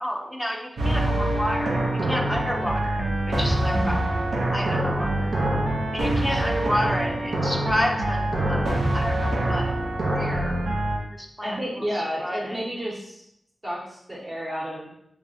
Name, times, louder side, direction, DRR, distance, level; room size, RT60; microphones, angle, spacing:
voice 1, 0.0-4.1 4.5-5.3 5.9-9.8 10.1-10.6 11.1-12.6, equal, ahead, 1 dB, 0.4 m, -30 dB
sound 1, 0.8-11.0, right 1 dB, 75° right, 0.7 m, -25 dB
voice 2, 3.7-4.0 6.3-6.4 11.4-13.2 13.6-14.9, equal, 25° right, -5 dB, 1.0 m, -31 dB
3.3 x 2.4 x 3.9 m, 0.76 s
wide cardioid pair, 160°, 0 cm